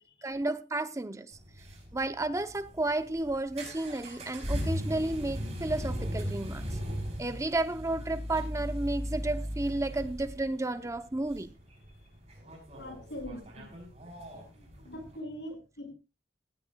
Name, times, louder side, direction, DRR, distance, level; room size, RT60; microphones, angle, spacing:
voice 1, 0.2-1.3 1.9-6.8 7.2-11.5, right 2 dB, 15° right, 11 dB, 0.6 m, -32 dB
sound 1, 1.3-15.2, equal, 35° right, 5.7 m, -38 dB
voice 2, 12.8-13.7 14.8-15.9, left 1 dB, 80° left, 5 dB, 6.1 m, -42 dB
18.5 x 16.0 x 2.2 m, 0.28 s
head